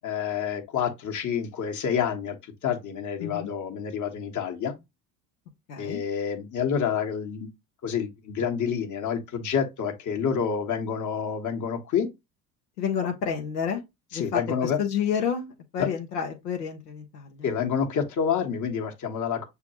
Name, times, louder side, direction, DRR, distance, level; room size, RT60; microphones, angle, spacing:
voice 1, 0.0-4.8 5.8-7.5 7.8-12.1 13.0-13.1 14.1-14.8 15.8-15.9 17.4-19.4, left 7 dB, 40° left, 1.2 m, -28 dB
voice 2, 3.2-3.5 5.7-6.0 12.8-13.8 14.1-17.5, left 7 dB, 80° left, 0.9 m, -30 dB
6.8 x 2.3 x 2.9 m
figure-of-eight pair, 60°, 48 cm